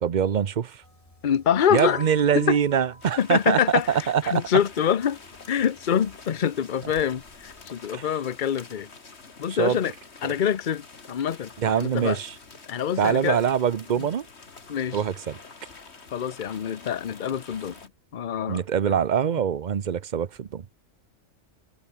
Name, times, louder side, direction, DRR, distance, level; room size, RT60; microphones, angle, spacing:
voice 1, 0.0-0.8 1.7-4.4 7.9-8.0 9.5-9.8 10.2-10.3 11.6-12.3 13.0-14.3 14.9-15.4 18.5-20.6, right 8 dB, 45° right, 0.8 m, -24 dB
sound 1, 0.8-7.7, left 1 dB, 30° left, 4.8 m, -47 dB
voice 2, 1.2-2.0 2.3-2.6 3.2-5.2 5.5-8.9 9.4-9.9 10.2-12.2 12.7-13.4 14.0-14.1 14.7-15.0 16.1-17.8 18.1-19.0, left 9 dB, 45° left, 0.9 m, -26 dB
sound 2, 3.0-17.9, left 4 dB, 65° left, 2.4 m, -47 dB
omnidirectional pair, 1.2 m